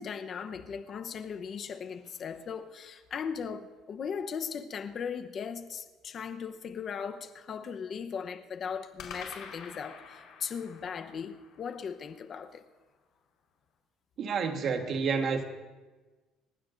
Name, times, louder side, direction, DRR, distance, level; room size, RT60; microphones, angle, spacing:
voice 1, 0.0-12.6, left 6 dB, 40° left, 8 dB, 0.9 m, -38 dB
sound 1, 1.3-3.2 9.0-13.3, left 6 dB, 65° left, 4.4 m, -50 dB
voice 2, 14.2-15.4, right 5 dB, 45° right, 5 dB, 1.5 m, -29 dB
30.0 x 15.5 x 2.6 m, 1.3 s
cardioid pair, 145°, 0 cm